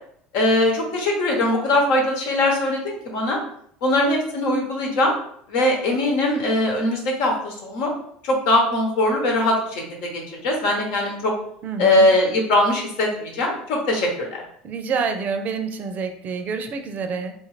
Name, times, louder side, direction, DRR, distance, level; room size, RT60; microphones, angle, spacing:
voice 1, 0.3-3.4 3.8-5.1 5.5-7.9 8.2-9.8 10.1-11.3 11.8-14.4, left 1 dB, 75° left, 0 dB, 1.2 m, -21 dB
voice 2, 11.6-12.1 14.6-17.3, right 5 dB, 45° right, 6 dB, 0.5 m, -27 dB
3.8 x 2.5 x 3.1 m, 0.66 s
supercardioid pair, 100°, 4 cm